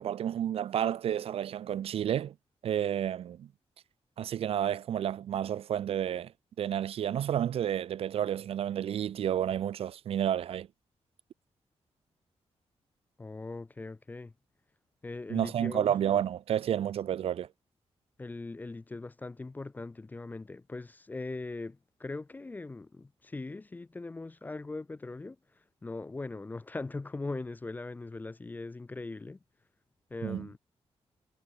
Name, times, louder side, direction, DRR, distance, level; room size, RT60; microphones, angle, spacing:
voice 1, 0.0-2.3 2.6-3.5 4.2-6.3 6.6-10.7 15.3-17.5 30.2-30.5, right 10 dB, 60° right, 0.4 m, -30 dB
voice 2, 13.2-14.3 15.0-16.0 18.2-25.4 25.8-29.4 30.1-30.6, left 3 dB, 15° left, 0.4 m, -40 dB
wide cardioid pair, 180°, 11 cm